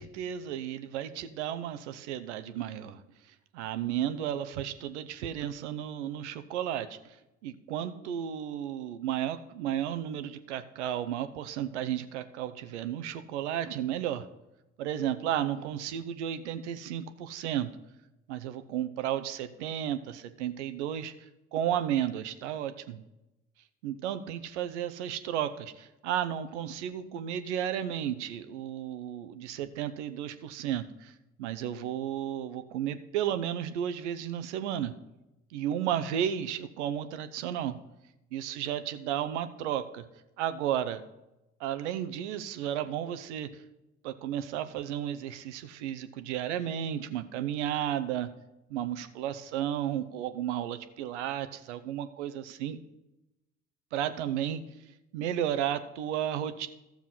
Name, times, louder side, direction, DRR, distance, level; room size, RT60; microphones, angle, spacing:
voice 1, 0.0-3.0 3.5-7.2 7.4-14.3 14.8-17.7 18.3-21.1 21.5-23.0 23.8-34.9 35.5-37.8 38.3-40.0 40.4-41.1 41.6-43.6 44.0-48.3 48.7-52.8 53.9-56.7, right 10 dB, 70° right, 11 dB, 0.9 m, -33 dB
13.0 x 7.2 x 5.6 m, 0.94 s
figure-of-eight pair, 60°, 36 cm